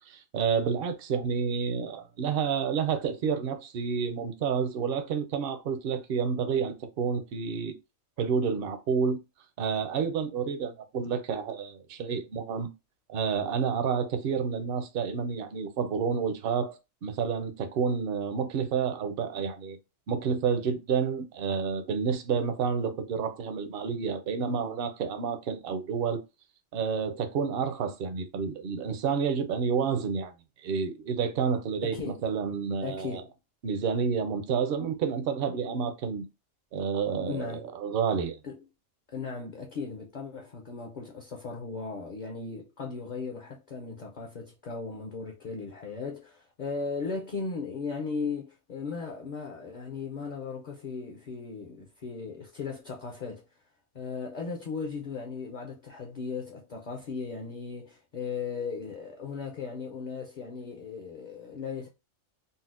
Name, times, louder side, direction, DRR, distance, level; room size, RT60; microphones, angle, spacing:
voice 1, 0.1-7.8 8.2-9.2 9.6-12.7 13.1-16.7 17.0-19.8 20.1-26.2 26.7-30.3 30.6-33.2 33.6-36.2 36.7-38.4, right 6 dB, 60° right, 0.6 m, -29 dB
voice 2, 31.8-32.2 32.8-33.3 37.3-37.7 38.4-38.6 39.1-53.5 53.9-61.9, left 4 dB, 50° left, 0.6 m, -37 dB
4.0 x 2.0 x 2.4 m
omnidirectional pair, 1.3 m